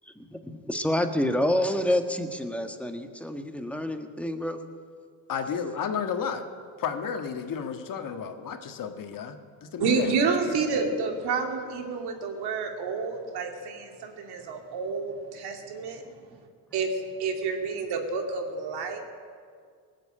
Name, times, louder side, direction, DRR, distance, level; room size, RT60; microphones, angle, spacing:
voice 1, 0.2-4.6, left 1 dB, 5° left, 6 dB, 1.5 m, -28 dB
voice 2, 5.3-6.5 6.8-9.4 9.6-10.6, left 7 dB, 50° left, 6 dB, 1.7 m, -32 dB
voice 3, 9.8-16.0 16.7-19.0, right 4 dB, 70° right, 3 dB, 2.5 m, -29 dB
19.0 x 7.7 x 8.7 m, 2.1 s
supercardioid pair, 70°, 40 cm